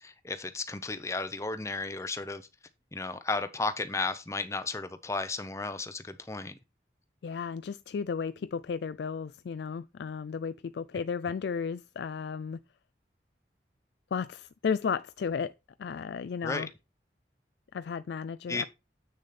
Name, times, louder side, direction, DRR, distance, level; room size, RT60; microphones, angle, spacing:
voice 1, 0.0-2.5 2.9-6.6 16.4-16.6 18.5-18.7, left 3 dB, 15° left, 0.6 m, -34 dB
voice 2, 7.2-12.6 14.1-15.5 15.8-16.7 17.7-18.7, left 6 dB, 75° left, 0.3 m, -34 dB
8.1 x 6.5 x 4.1 m
head